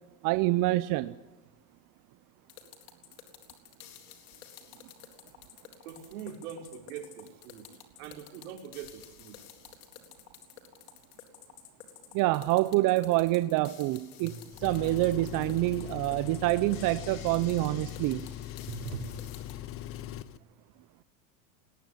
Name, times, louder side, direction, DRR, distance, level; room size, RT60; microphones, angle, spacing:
voice 1, 0.2-1.1 12.1-14.3 14.6-18.3, right 18 dB, 45° right, 13 dB, 0.8 m, -26 dB
sound 1, 2.5-19.6, left 10 dB, 80° left, 4.0 m, -51 dB
voice 2, 5.8-9.4 14.2-14.4 18.7-19.1 19.7-19.8, right 7 dB, 70° right, 2 dB, 5.6 m, -42 dB
Engine, 14.5-20.4, left 13 dB, 30° left, 0.8 m, -41 dB
20.5 x 18.0 x 9.8 m, 1.2 s
supercardioid pair, 120°, 45 cm